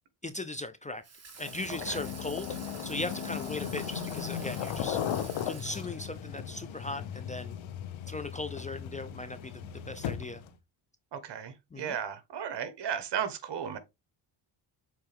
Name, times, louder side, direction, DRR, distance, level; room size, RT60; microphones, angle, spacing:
voice 1, 0.2-1.0 1.4-5.0 5.4-7.6 8.1-10.4 11.7-12.0, left 2 dB, 15° left, 0.6 m, -38 dB
Water tap faucet / Sink (filling or washing), 1.0-6.3, right 4 dB, 30° right, 1.9 m, -48 dB
sound 1, 1.4-10.5, left 9 dB, 80° left, 1.0 m, -37 dB
voice 2, 11.1-13.8, right 8 dB, 60° right, 1.5 m, -35 dB
6.7 x 4.4 x 3.6 m
cardioid pair, 105°, 46 cm